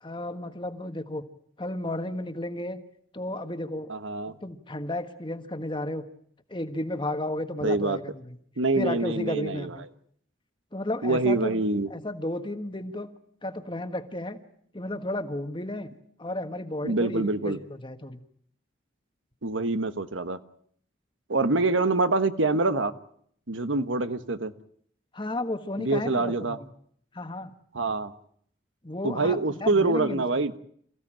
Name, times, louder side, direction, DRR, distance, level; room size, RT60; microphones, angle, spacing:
voice 1, 0.0-1.2 1.6-2.8 3.1-3.9 4.4-6.0 6.5-8.3 8.8-9.8 10.7-11.6 11.9-13.1 13.4-14.4 14.7-15.9 16.2-18.2 25.1-26.7 27.1-27.5 28.8-30.2, left 1 dB, 25° left, 9 dB, 1.5 m, -33 dB
voice 2, 3.9-4.3 7.6-8.0 8.6-9.7 11.0-11.9 16.8-17.6 19.4-20.4 21.3-22.9 23.5-24.5 25.8-26.6 27.7-28.1 29.0-30.6, right 3 dB, 90° right, 11 dB, 1.4 m, -25 dB
28.0 x 15.5 x 8.9 m, 0.64 s
head